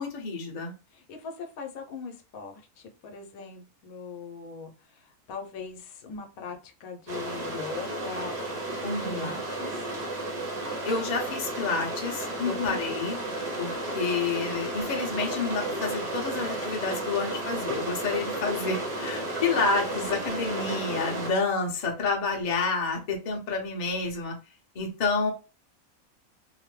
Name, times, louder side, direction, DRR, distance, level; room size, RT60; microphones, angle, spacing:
voice 1, 0.0-0.7 8.8-9.4 10.8-12.3 12.6-13.2 13.6-24.3 24.7-25.3, left 4 dB, 45° left, 1 dB, 0.6 m, -29 dB
voice 2, 0.9-8.4 8.8-9.7 12.4-12.8, left 5 dB, 75° left, 3 dB, 1.1 m, -39 dB
sound 1, 7.1-21.3, right 2 dB, 45° right, 0.6 m, -33 dB
2.9 x 2.0 x 3.0 m, 0.31 s
omnidirectional pair, 1.5 m